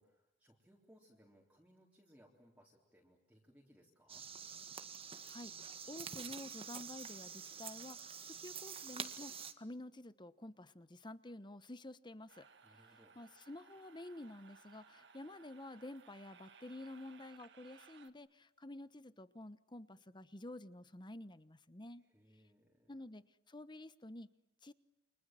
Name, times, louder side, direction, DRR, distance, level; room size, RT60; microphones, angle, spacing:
voice 1, 0.0-4.3 12.6-13.2 22.0-23.0, equal, 10° right, -2 dB, 3.7 m, -66 dB
sound 1, 4.1-9.5, right 7 dB, 30° right, 1.8 m, -47 dB
voice 2, 5.2-12.5 13.2-22.0 22.9-24.3 24.6-24.7, left 1 dB, 25° left, 14 dB, 1.1 m, -50 dB
sound 2, 12.3-18.1, right 5 dB, 65° right, 1.9 m, -62 dB
29.5 x 26.0 x 7.7 m, 0.86 s
head